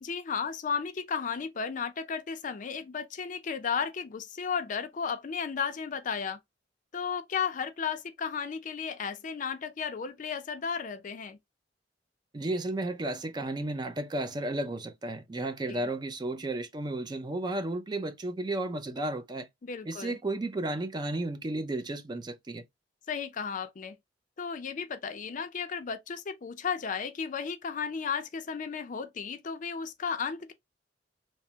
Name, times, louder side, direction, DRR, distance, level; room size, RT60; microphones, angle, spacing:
voice 1, 0.0-6.4 6.9-11.4 15.7-15.8 19.6-20.2 23.1-24.0 24.4-30.5, left 6 dB, 45° left, 0.4 m, -34 dB
voice 2, 12.3-19.5 19.8-22.6, right 2 dB, 25° right, 0.4 m, -33 dB
3.3 x 2.0 x 2.6 m
head